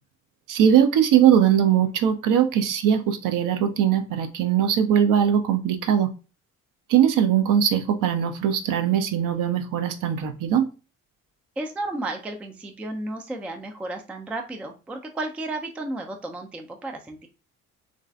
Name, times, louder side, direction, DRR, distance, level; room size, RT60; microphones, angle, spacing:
voice 1, 0.5-6.1 6.9-10.7, right 9 dB, 50° right, 8 dB, 0.6 m, -20 dB
voice 2, 11.6-17.3, right 2 dB, 5° right, 4 dB, 0.3 m, -33 dB
3.0 x 2.5 x 2.3 m, 0.33 s
hypercardioid pair, 50°, 41 cm